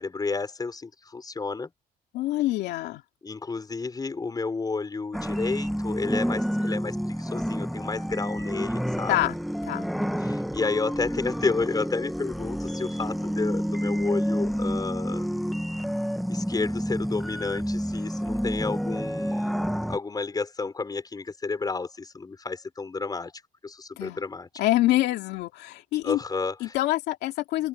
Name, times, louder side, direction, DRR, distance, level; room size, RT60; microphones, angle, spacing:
voice 1, 0.0-1.7 3.2-9.2 10.2-15.3 16.3-19.5 19.9-23.3 23.6-24.5 26.0-26.8, left 4 dB, 20° left, 5.1 m, -31 dB
voice 2, 2.1-3.0 9.1-9.3 9.6-9.9 24.0-24.2 24.6-26.2 26.6-27.7, left 16 dB, 85° left, 2.6 m, -25 dB
sound 1, 5.1-20.0, equal, ahead, 1.1 m, -29 dB
open air
cardioid pair, 110°, 17 cm